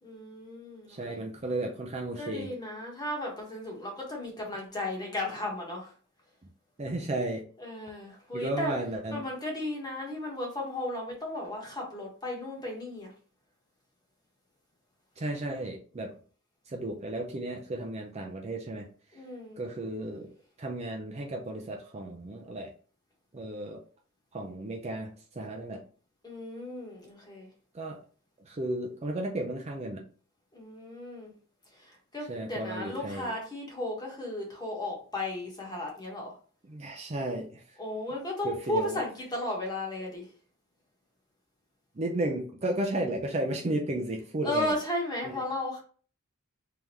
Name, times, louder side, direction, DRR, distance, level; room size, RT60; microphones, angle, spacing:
voice 1, 0.0-1.2 2.2-5.9 7.6-8.7 9.1-13.1 19.1-19.6 26.2-27.5 30.5-31.3 31.7-36.4 37.8-40.3 44.4-45.8, left 1 dB, 20° left, -1 dB, 1.4 m, -35 dB
voice 2, 0.9-2.5 6.8-7.4 8.3-9.2 15.2-16.1 16.7-18.9 19.6-20.3 20.6-22.7 23.3-23.8 24.3-25.8 27.7-28.0 28.5-30.1 32.3-33.3 36.7-37.6 38.4-39.0 42.0-44.7 45.2-45.4, right 1 dB, 30° right, 1 dB, 0.6 m, -34 dB
3.6 x 3.4 x 3.0 m, 0.41 s
head